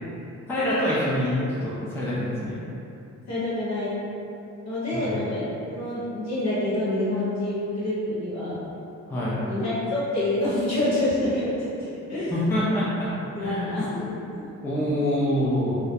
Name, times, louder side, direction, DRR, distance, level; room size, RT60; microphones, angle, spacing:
voice 1, 0.5-2.6 4.9-5.2 9.1-9.4 12.3-13.1 13.4-13.9 14.6-15.8, left 1 dB, 5° left, -8 dB, 0.4 m, -25 dB
voice 2, 3.3-3.9 4.6-8.6 9.5-12.4 13.3-14.5, left 1 dB, 55° left, -9 dB, 1.0 m, -27 dB
2.3 x 2.0 x 2.7 m, 2.8 s
cardioid pair, 95°, 32 cm